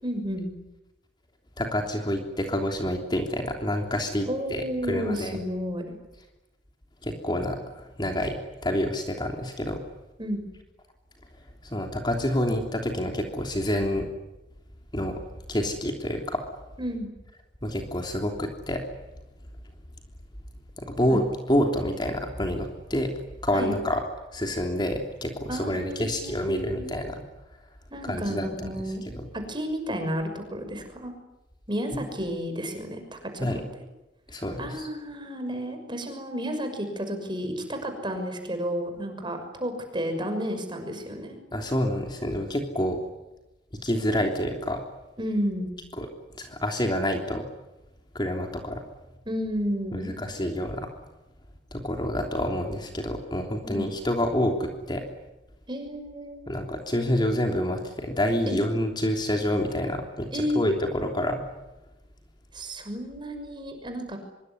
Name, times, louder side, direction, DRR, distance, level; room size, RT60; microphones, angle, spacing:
voice 1, 0.0-0.5 4.3-5.8 10.2-10.4 16.8-17.1 21.1-21.2 23.5-23.7 25.5-26.9 27.9-29.0 29.3-31.1 31.7-33.6 34.6-41.4 45.2-45.7 49.2-50.2 53.6-53.9 55.7-56.4 58.5-58.6 60.3-60.7 62.5-64.2, equal, 25° right, 6 dB, 6.3 m, -32 dB
voice 2, 1.6-5.4 7.0-9.8 11.6-14.1 14.9-15.2 15.5-16.4 17.6-18.8 20.8-21.2 21.5-23.1 23.4-24.0 24.3-27.2 28.0-28.7 29.1-29.3 33.4-33.6 34.3-34.9 41.5-43.0 43.8-44.8 46.0-46.1 46.3-47.5 48.1-48.8 49.9-50.9 51.7-55.0 56.5-61.4, left 1 dB, 25° left, 3 dB, 3.3 m, -28 dB
25.0 x 24.0 x 9.9 m, 1.0 s
head